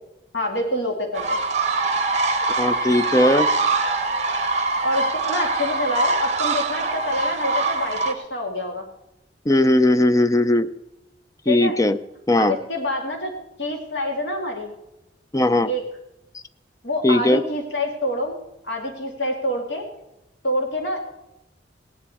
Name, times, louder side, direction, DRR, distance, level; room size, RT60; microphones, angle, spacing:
voice 1, 0.3-1.4 4.8-8.8 11.5-11.8 12.4-13.3 13.6-14.7 15.6-15.8 16.8-18.3 18.6-19.9 20.4-21.0, left 1 dB, 70° left, 2 dB, 2.2 m, -26 dB
sound 1, 1.1-8.1, right 3 dB, 40° right, 1.2 m, -23 dB
voice 2, 2.6-3.5 9.5-10.7 11.5-12.0 12.3-12.6 15.3-15.7 17.0-17.4, left 1 dB, 20° left, 11 dB, 0.5 m, -18 dB
18.0 x 9.9 x 4.2 m, 0.91 s
head